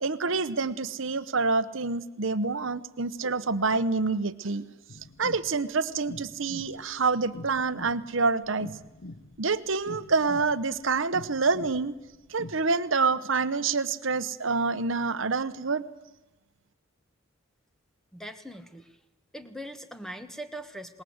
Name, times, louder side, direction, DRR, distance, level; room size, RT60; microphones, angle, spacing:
voice 1, 0.0-4.6 5.2-8.7 9.4-11.9 12.3-15.8, right 4 dB, 65° right, 12 dB, 1.0 m, -27 dB
sound 1, 4.9-12.6, left 2 dB, 65° left, 1.3 m, -45 dB
voice 2, 18.1-19.0 19.3-21.0, right 1 dB, ahead, 8 dB, 1.5 m, -41 dB
26.5 x 20.5 x 8.0 m, 1.1 s
head